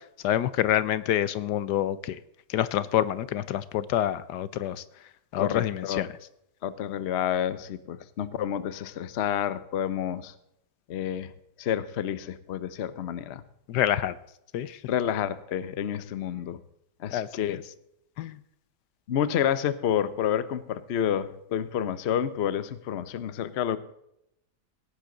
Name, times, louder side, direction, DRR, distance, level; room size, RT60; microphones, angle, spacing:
voice 1, 0.2-2.2 2.5-4.8 5.3-6.1 13.7-14.1 14.5-14.8 17.1-17.6 18.2-18.4, left 12 dB, 80° left, 16 dB, 1.3 m, -27 dB
voice 2, 5.4-6.1 6.6-10.3 10.9-11.3 11.6-13.4 14.9-16.6 17.0-17.6 19.1-23.8, left 9 dB, 50° left, 15 dB, 0.9 m, -29 dB
17.5 x 9.9 x 3.9 m, 0.79 s
omnidirectional pair, 1.8 m